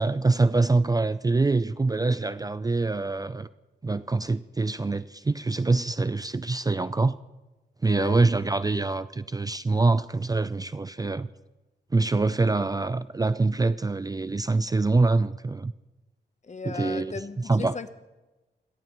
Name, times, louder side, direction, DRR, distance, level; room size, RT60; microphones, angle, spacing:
voice 1, 0.0-3.5 3.8-7.2 7.8-11.3 11.9-15.7 16.7-17.2 17.5-17.7, right 3 dB, 20° right, 0.4 m, -24 dB
voice 2, 7.9-8.3 8.7-8.8 16.4-17.9, left 4 dB, 40° left, 0.9 m, -36 dB
24.5 x 17.5 x 3.1 m
cardioid pair, 80°, 18 cm